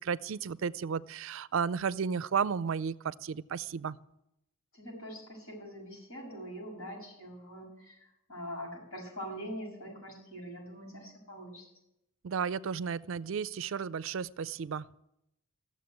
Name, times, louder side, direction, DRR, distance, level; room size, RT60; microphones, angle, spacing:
voice 1, 0.0-4.0 12.2-14.8, right 6 dB, 65° right, 18 dB, 0.4 m, -33 dB
voice 2, 4.7-11.6, equal, 85° left, 0 dB, 6.8 m, -43 dB
14.5 x 7.3 x 9.4 m, 0.83 s
head